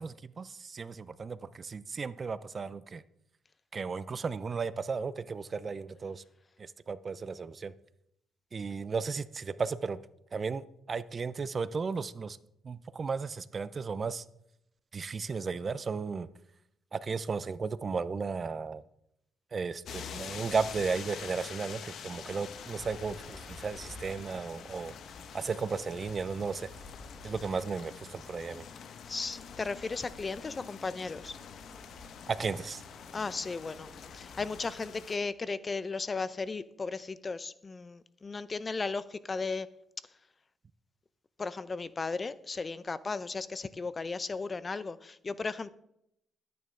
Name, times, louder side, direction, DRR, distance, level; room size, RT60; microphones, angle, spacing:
voice 1, 0.0-3.0 3.7-6.2 6.9-7.7 8.5-10.0 10.3-10.6 10.9-12.4 12.6-14.2 14.9-16.3 16.9-18.8 19.5-24.9 25.3-26.7 27.2-28.7 32.3-32.8, right 5 dB, 40° right, 0.5 m, -34 dB
sound 1, 19.9-35.2, left 7 dB, 70° left, 1.0 m, -46 dB
sound 2, 22.2-34.7, left 3 dB, 55° left, 1.6 m, -52 dB
voice 2, 29.1-31.4 33.1-39.7 41.4-45.7, left 4 dB, 30° left, 0.5 m, -36 dB
12.5 x 9.4 x 3.8 m
cardioid pair, 90°, 0 cm